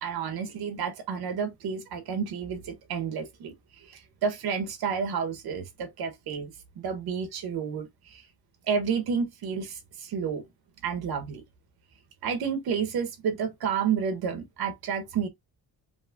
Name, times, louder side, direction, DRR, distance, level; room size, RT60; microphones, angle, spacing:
voice 1, 0.0-6.5 6.8-8.2 8.7-10.4 10.8-11.4 12.2-15.3, right 6 dB, 70° right, 1.2 m, -30 dB
5.3 x 2.9 x 2.5 m
cardioid pair, 150°, 39 cm